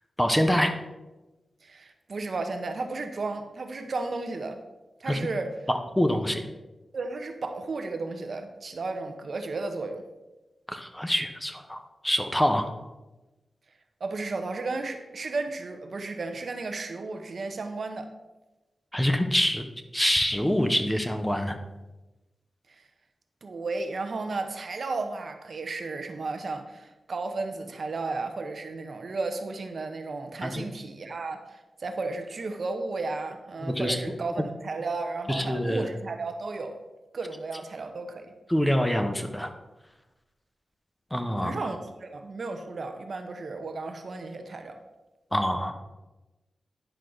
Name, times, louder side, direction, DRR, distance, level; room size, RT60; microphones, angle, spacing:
voice 1, 0.2-0.7 5.1-5.2 6.0-6.4 10.7-12.7 18.9-19.7 19.9-21.6 30.4-30.7 33.6-34.0 35.3-35.9 38.5-39.5 41.1-41.5 45.3-45.7, equal, 5° left, 6 dB, 1.0 m, -25 dB
voice 2, 1.6-4.6 5.0-5.5 6.3-6.4 6.9-10.0 14.0-18.1 22.7-22.8 23.4-36.8 37.1-38.3 41.4-44.8, right 3 dB, 65° right, 6 dB, 0.9 m, -34 dB
10.0 x 6.3 x 4.0 m, 1.1 s
cardioid pair, 55°, 0 cm